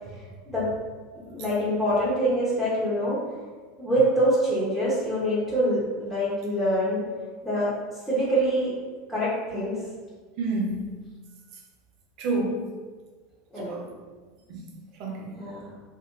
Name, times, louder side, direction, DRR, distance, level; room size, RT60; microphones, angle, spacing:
voice 1, 0.1-0.6 1.3-3.2 3.8-7.0 7.4-7.7 8.1-8.7 9.1-9.8 13.5-13.8 15.3-15.7, right 1 dB, 5° right, -12 dB, 1.5 m, -25 dB
voice 2, 10.4-11.1 12.2-12.7 13.6-13.8 14.5-14.7 15.0-15.4, right 2 dB, 55° right, 0 dB, 0.7 m, -29 dB
3.5 x 2.7 x 2.7 m, 1.4 s
figure-of-eight pair, 80°, 0 cm